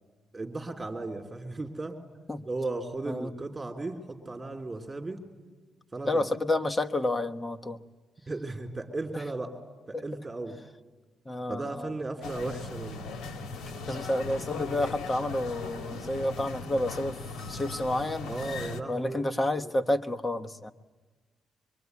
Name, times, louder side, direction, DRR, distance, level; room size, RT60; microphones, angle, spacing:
voice 1, 0.3-2.0 2.5-5.2 5.9-6.2 8.3-9.6 9.9-10.6 11.5-13.1 18.2-19.7, right 2 dB, 20° right, 4 dB, 3.5 m, -36 dB
voice 2, 6.0-7.8 9.1-9.2 9.9-10.0 11.2-11.9 13.9-17.2 17.5-18.3 18.9-20.7, left 1 dB, 20° left, 6 dB, 1.2 m, -30 dB
sound 1, 12.2-18.8, left 4 dB, 85° left, 1.9 m, -38 dB
24.5 x 24.5 x 9.6 m, 1.3 s
cardioid pair, 125°, 0 cm